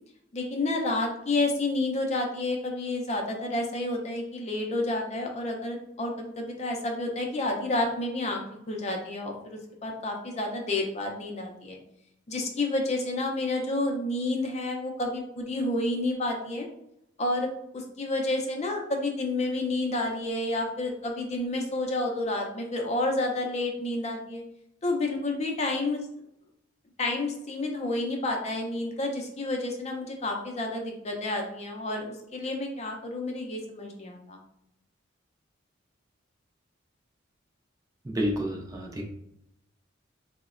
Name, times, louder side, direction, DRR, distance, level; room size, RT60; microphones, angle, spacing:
voice 1, 0.3-8.4 8.7-11.8 12.3-16.7 17.2-24.4 24.8-26.0 27.0-34.4, left 2 dB, 35° left, 2 dB, 0.5 m, -30 dB
voice 2, 38.0-39.1, equal, 20° right, 0 dB, 0.4 m, -30 dB
3.7 x 2.1 x 2.4 m, 0.81 s
head